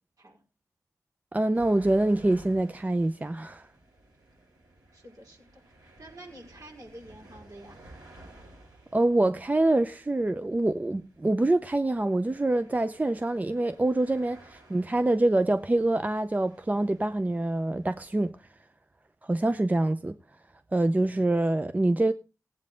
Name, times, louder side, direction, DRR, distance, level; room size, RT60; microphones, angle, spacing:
voice 1, 1.3-3.7 8.9-18.4 19.2-20.2 20.7-22.1, right 2 dB, 25° right, 0.5 m, -25 dB
sound 1, 1.5-18.3, right 1 dB, 90° right, 7.8 m, -55 dB
voice 2, 4.9-5.5 5.8-7.8, right 1 dB, 60° right, 4.7 m, -48 dB
16.5 x 8.6 x 3.8 m
cardioid pair, 55°, 7 cm